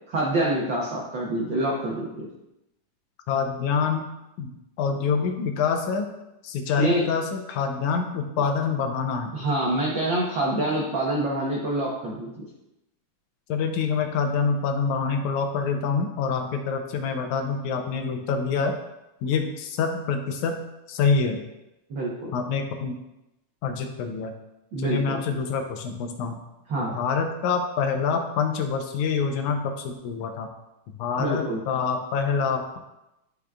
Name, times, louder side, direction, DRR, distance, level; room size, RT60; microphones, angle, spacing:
voice 1, 0.1-2.3 6.8-7.0 9.3-12.3 21.9-22.3 24.7-25.2 26.7-27.0 31.2-31.6, right 1 dB, 80° right, -3 dB, 1.0 m, -26 dB
voice 2, 3.3-4.1 4.4-4.5 4.8-6.1 6.4-9.4 13.5-18.8 19.2-20.6 20.9-21.4 22.3-23.0 23.6-24.3 24.8-26.4 26.8-30.5 31.0-32.8, left 5 dB, 80° left, 5 dB, 2.1 m, -26 dB
11.0 x 5.0 x 2.3 m, 0.92 s
omnidirectional pair, 3.5 m